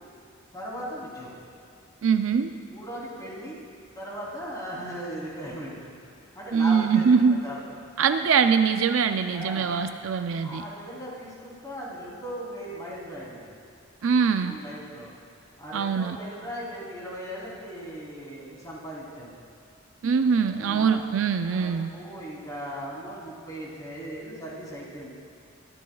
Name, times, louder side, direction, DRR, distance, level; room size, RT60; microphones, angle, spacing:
voice 1, 0.5-1.4 2.7-3.6 3.9-8.0 9.3-9.7 10.3-13.5 14.4-15.1 15.6-19.4 20.4-21.1 21.4-25.1, equal, 20° left, -6 dB, 3.2 m, -38 dB
voice 2, 2.0-2.5 6.5-7.4 8.0-10.6 14.0-14.5 15.7-16.2 20.0-21.9, right 6 dB, 70° right, 8 dB, 0.4 m, -23 dB
20.5 x 13.5 x 2.3 m, 2.3 s
head